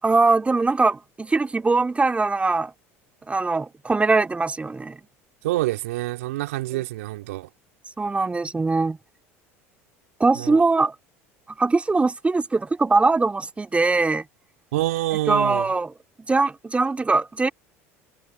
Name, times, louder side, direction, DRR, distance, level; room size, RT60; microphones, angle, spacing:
voice 1, 0.0-2.7 3.3-5.0 8.0-9.0 10.2-11.0 11.6-14.3 15.3-15.9 16.3-17.5, right 3 dB, 15° right, 2.2 m, -21 dB
voice 2, 5.4-7.5 10.3-10.6 14.7-15.7, right 17 dB, 80° right, 2.8 m, -26 dB
hypercardioid pair, 80°, 7 cm